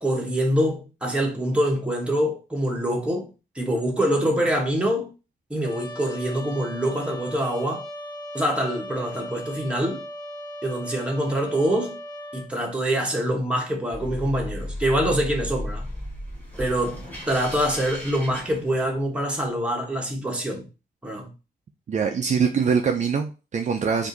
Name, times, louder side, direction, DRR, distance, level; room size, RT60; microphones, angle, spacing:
voice 1, 0.0-3.3 3.5-5.1 5.5-7.9 8.3-10.0 10.6-12.0 12.3-15.8 16.6-20.7 21.0-21.3, equal, 5° right, 1.3 m, -25 dB
Trumpet, 5.6-12.5, equal, 25° left, 0.6 m, -38 dB
sound 1, 13.9-19.2, left 1 dB, 10° left, 2.0 m, -35 dB
voice 2, 21.9-24.1, right 6 dB, 45° right, 0.5 m, -23 dB
4.7 x 2.7 x 4.0 m
wide cardioid pair, 140°, 16 cm